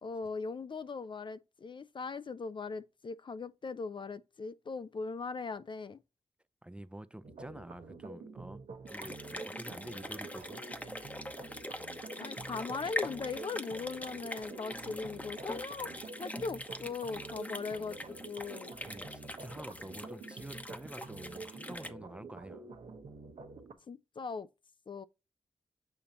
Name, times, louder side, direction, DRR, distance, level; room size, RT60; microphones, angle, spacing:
voice 1, 0.0-6.0 12.2-15.9 16.2-18.7 23.9-24.5 24.9-25.0, left 4 dB, 50° left, 0.4 m, -39 dB
voice 2, 6.6-10.6 18.8-22.7, right 1 dB, 10° right, 0.5 m, -48 dB
sound 1, 7.2-23.7, right 4 dB, 85° right, 1.0 m, -48 dB
sound 2, 8.9-21.9, left 1 dB, 15° left, 0.9 m, -43 dB
7.0 x 2.8 x 5.0 m
cardioid pair, 55°, 11 cm